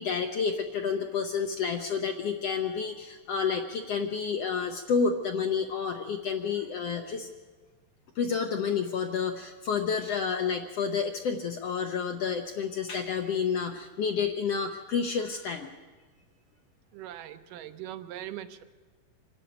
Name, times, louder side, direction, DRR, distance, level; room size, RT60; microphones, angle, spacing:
voice 1, 0.0-7.3 8.1-15.7, left 6 dB, 70° left, 5 dB, 1.6 m, -30 dB
voice 2, 16.9-18.6, right 12 dB, 80° right, 10 dB, 2.4 m, -41 dB
25.5 x 11.0 x 9.2 m, 1.3 s
omnidirectional pair, 3.9 m